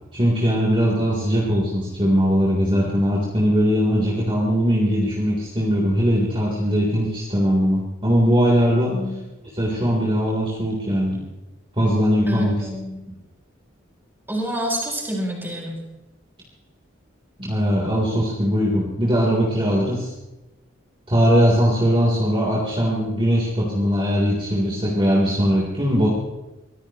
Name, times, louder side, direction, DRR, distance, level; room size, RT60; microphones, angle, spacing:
voice 1, 0.1-8.9 9.5-11.2 11.8-12.5 17.4-20.1 21.1-26.1, equal, 25° right, -5 dB, 3.8 m, -20 dB
voice 2, 12.3-13.0 14.3-15.8, equal, 10° right, -3 dB, 5.1 m, -27 dB
24.5 x 17.0 x 3.1 m, 1.0 s
head